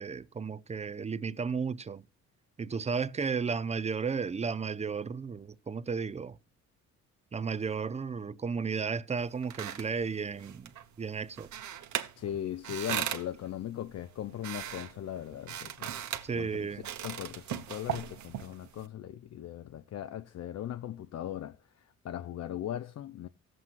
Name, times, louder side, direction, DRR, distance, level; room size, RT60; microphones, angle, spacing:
voice 1, 0.0-2.1 2.6-6.4 7.3-10.7 11.0-11.5 16.2-16.9, right 5 dB, 20° right, 0.6 m, -33 dB
sound 1, 9.2-18.9, right 10 dB, 70° right, 1.1 m, -40 dB
voice 2, 12.2-16.0 16.3-23.3, left 11 dB, 60° left, 0.6 m, -39 dB
17.5 x 7.7 x 2.5 m
cardioid pair, 90°, 30 cm